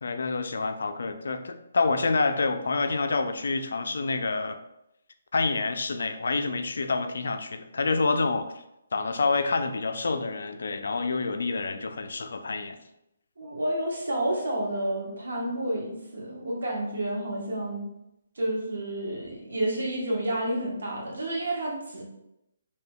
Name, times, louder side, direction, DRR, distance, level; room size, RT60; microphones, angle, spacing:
voice 1, 0.0-4.6 5.3-8.5 8.9-12.8, left 3 dB, 70° left, 8 dB, 0.3 m, -27 dB
voice 2, 13.4-17.9 18.4-22.0, right 1 dB, 75° right, -2 dB, 1.0 m, -30 dB
3.4 x 2.7 x 2.2 m, 0.85 s
hypercardioid pair, 150°, 0 cm